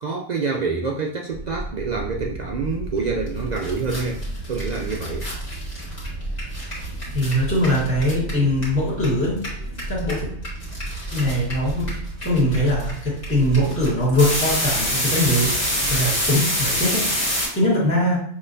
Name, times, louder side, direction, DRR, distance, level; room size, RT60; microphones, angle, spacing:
voice 1, 0.0-4.2 4.5-5.3, right 4 dB, 60° right, 0 dB, 0.4 m, -27 dB
sound 1, 1.3-16.0, right 2 dB, 65° left, 1.5 m, -33 dB
sound 2, 3.3-3.4 3.6-9.1 9.3-17.5, equal, 35° left, 1.6 m, -26 dB
voice 2, 7.1-9.4 9.9-10.2 11.1-12.0 12.2-17.1 17.5-18.2, left 1 dB, 10° left, -8 dB, 1.5 m, -21 dB
6.1 x 2.9 x 2.6 m, 0.65 s
omnidirectional pair, 1.2 m